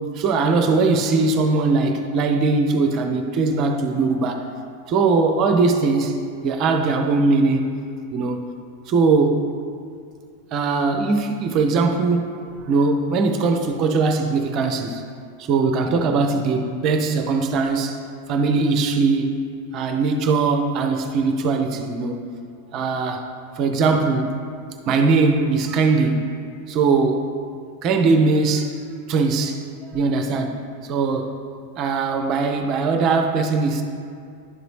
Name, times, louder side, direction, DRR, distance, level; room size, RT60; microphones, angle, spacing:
voice 1, 0.0-4.5 4.9-6.2 6.4-7.7 8.1-8.5 8.9-9.5 10.5-15.0 15.4-18.0 18.3-19.4 19.7-22.3 22.7-23.3 23.5-24.4 24.9-26.3 26.7-27.3 27.8-28.8 29.1-31.4 31.8-33.8, right 4 dB, 35° right, 5 dB, 0.5 m, -20 dB
11.0 x 3.9 x 3.2 m, 2.3 s
figure-of-eight pair, 90°, 0 cm